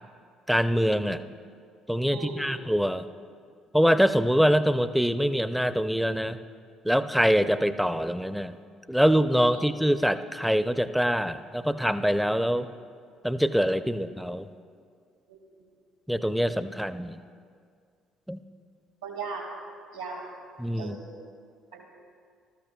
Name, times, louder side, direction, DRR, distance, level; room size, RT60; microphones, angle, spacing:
voice 1, 0.5-1.2 1.9-3.1 3.7-6.4 6.8-8.6 8.9-12.7 13.2-14.5 16.1-17.2 18.3-18.4 20.6-21.0, equal, ahead, 12 dB, 0.5 m, -24 dB
voice 2, 2.1-2.6 9.5-9.7 19.0-19.4 19.9-20.3 20.8-21.1 21.7-21.9, right 4 dB, 85° right, -1 dB, 2.0 m, -37 dB
19.5 x 13.5 x 2.3 m, 2.1 s
figure-of-eight pair, 50°, 0 cm